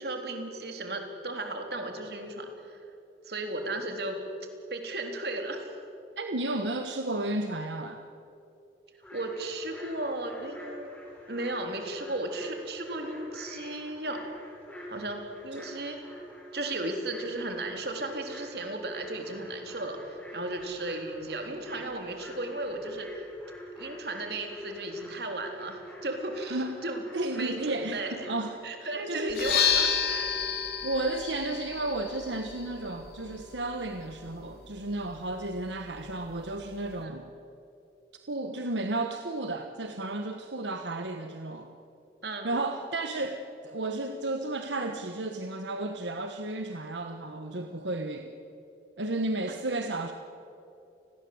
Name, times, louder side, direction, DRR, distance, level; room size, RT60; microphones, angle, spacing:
voice 1, 0.0-2.8 3.3-4.2 4.7-5.8 9.1-10.9 11.3-14.2 14.9-16.0 16.5-23.2 23.8-27.0 27.4-28.3 28.6-30.3 37.0-37.1 42.2-42.5, right 2 dB, 65° right, 4 dB, 3.7 m, -35 dB
voice 2, 6.2-8.0 15.5-15.7 26.5-26.7 27.1-29.3 30.8-37.3 38.3-41.7 42.4-48.3 49.0-50.1, right 2 dB, 85° right, 5 dB, 1.4 m, -33 dB
sound 1, 9.0-28.5, equal, 10° left, 6.8 m, -47 dB
sound 2, 29.3-37.0, left 8 dB, 60° left, 2.5 m, -32 dB
29.5 x 21.0 x 8.0 m, 2.8 s
head